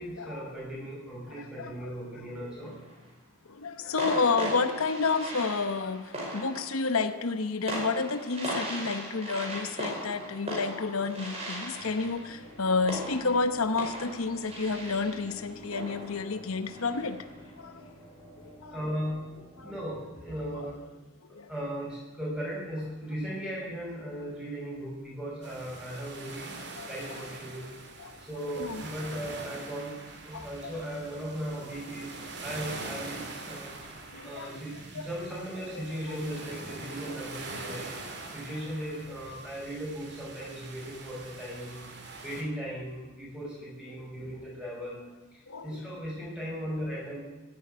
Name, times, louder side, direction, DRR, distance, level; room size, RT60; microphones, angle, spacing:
voice 1, 0.0-2.8 18.7-20.8 21.5-27.7 28.2-45.0 45.3-47.2, equal, 5° right, -4 dB, 5.8 m, -38 dB
voice 2, 1.3-1.7 3.5-17.2 17.6-17.8 18.6-18.8 19.6-19.7 21.3-21.5 26.8-26.9 28.0-28.1 28.6-28.8 30.3-30.7 34.1-34.6 34.9-35.1 35.8-35.9 45.5-45.8, left 4 dB, 85° left, 11 dB, 0.9 m, -30 dB
sound 1, 2.7-3.1 4.0-17.4, right 1 dB, 30° right, 5.1 m, -38 dB
sound 2, 11.8-19.9, equal, 30° left, 4.0 m, -51 dB
sound 3, 25.4-42.4, right 3 dB, 50° right, 2.7 m, -43 dB
16.0 x 8.8 x 9.6 m, 1.1 s
head